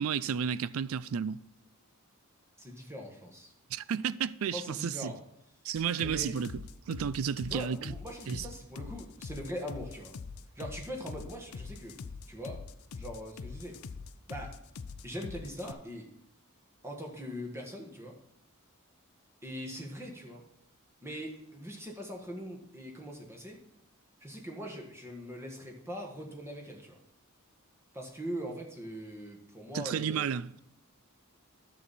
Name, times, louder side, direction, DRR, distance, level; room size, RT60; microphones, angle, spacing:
voice 1, 0.0-1.4 3.7-5.1 5.6-7.9 8.3-8.5 29.7-30.5, right 7 dB, 65° right, 0.4 m, -32 dB
voice 2, 2.6-3.5 4.5-5.2 6.0-6.4 7.5-10.1 10.5-12.0 12.3-12.6 12.9-13.8 14.3-14.6 15.0-16.1 16.8-18.2 19.4-20.4 21.0-23.6 24.2-27.0 27.9-30.3, equal, 10° right, 1.6 m, -41 dB
sound 1, 5.8-15.7, left 5 dB, 70° left, 0.5 m, -43 dB
11.0 x 7.2 x 4.2 m
head